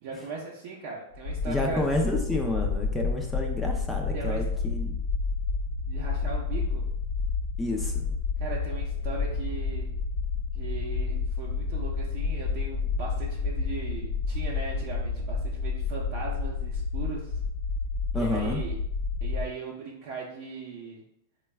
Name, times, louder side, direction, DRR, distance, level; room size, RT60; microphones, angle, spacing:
voice 1, 0.0-1.8 4.1-4.4 5.9-6.9 8.4-9.9 10.5-17.4 18.1-18.7 19.2-21.0, right 4 dB, 50° right, -4 dB, 0.6 m, -38 dB
sound 1, 1.1-19.4, left 4 dB, 55° left, 0.6 m, -30 dB
voice 2, 1.5-5.0 7.6-8.1 18.1-18.6, left 1 dB, 5° left, 1 dB, 0.5 m, -30 dB
sound 2, 9.0-15.1, equal, 85° left, 0.8 m, -43 dB
3.9 x 2.2 x 3.3 m, 0.78 s
supercardioid pair, 150°, 0 cm